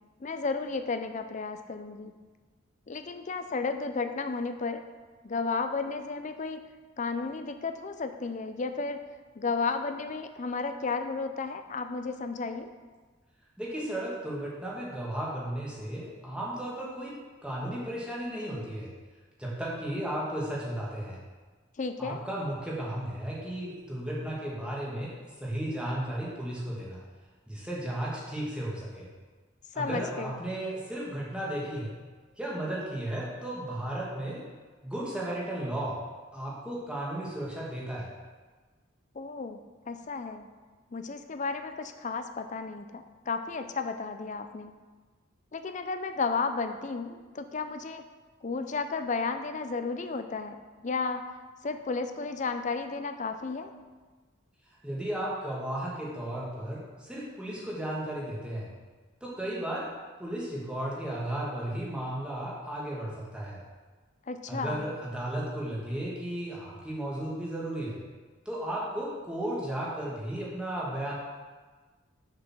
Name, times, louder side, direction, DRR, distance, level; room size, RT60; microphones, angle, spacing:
voice 1, 0.2-2.1 2.9-4.8 5.2-6.6 7.0-9.0 9.3-12.7 21.8-22.2 29.7-30.4 39.1-39.6 39.9-40.5 40.9-44.7 45.5-48.0 48.4-50.6 50.8-51.2 51.6-53.7 64.3-64.8, left 4 dB, 40° left, 8 dB, 0.5 m, -33 dB
voice 2, 13.6-17.2 17.4-18.9 19.4-21.2 22.0-25.1 25.4-27.0 27.5-29.1 29.7-31.9 32.4-34.4 34.8-36.0 36.3-38.1 54.8-58.7 59.2-59.9 60.2-63.6 64.5-68.0 68.5-71.1, right 1 dB, 5° right, -6 dB, 1.7 m, -34 dB
6.9 x 5.4 x 6.0 m, 1.3 s
head